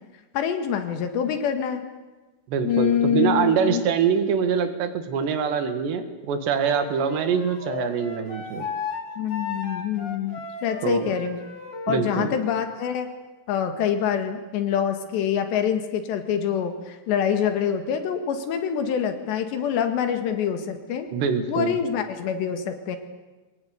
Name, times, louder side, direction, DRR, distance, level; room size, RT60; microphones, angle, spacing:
voice 1, 0.3-1.8 2.6-3.9 9.2-11.4 11.9-13.1 13.5-21.1 21.5-23.0, left 8 dB, 85° left, 7 dB, 4.1 m, -25 dB
voice 2, 2.5-8.7 10.8-11.1 11.9-12.3 21.1-21.8, right 6 dB, 80° right, 8 dB, 4.0 m, -24 dB
Wind instrument woodwind instrument, 6.6-12.0, left 5 dB, 45° left, 4.2 m, -35 dB
22.5 x 20.0 x 9.5 m, 1.2 s
omnidirectional pair, 4.9 m